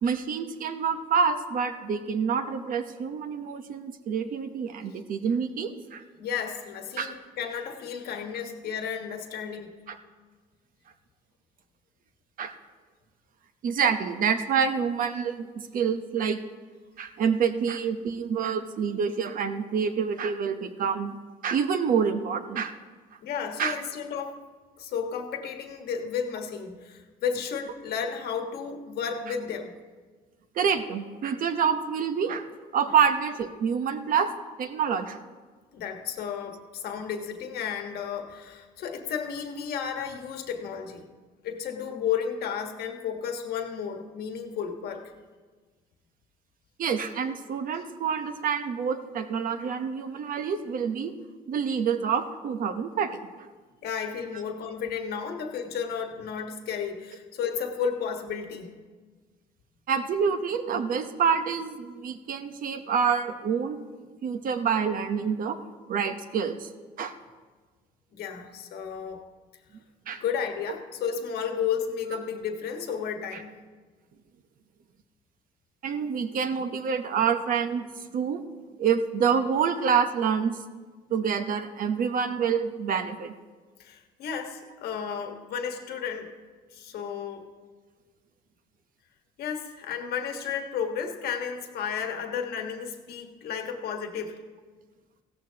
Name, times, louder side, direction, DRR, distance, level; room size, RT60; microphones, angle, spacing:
voice 1, 0.0-6.0 6.9-7.1 9.9-10.0 12.4-12.5 13.6-15.5 15.7-16.4 17.0-21.2 21.4-22.7 23.6-23.8 30.6-32.5 32.7-34.3 34.6-35.2 46.8-51.1 51.5-53.2 59.9-63.8 64.2-65.6 65.9-66.7 67.0-67.1 70.1-70.2 73.3-73.4 75.8-77.8 78.1-78.4 78.8-80.5 81.1-83.3, right 6 dB, 55° right, 8 dB, 0.9 m, -27 dB
voice 2, 6.2-9.8 23.2-24.4 24.8-29.7 35.7-41.1 41.4-45.0 53.8-58.7 68.1-69.2 70.2-73.5 83.8-86.3 86.7-87.4 89.4-94.4, left 7 dB, 70° left, 4 dB, 1.4 m, -33 dB
16.0 x 13.5 x 2.9 m, 1.4 s
cardioid pair, 110°, 17 cm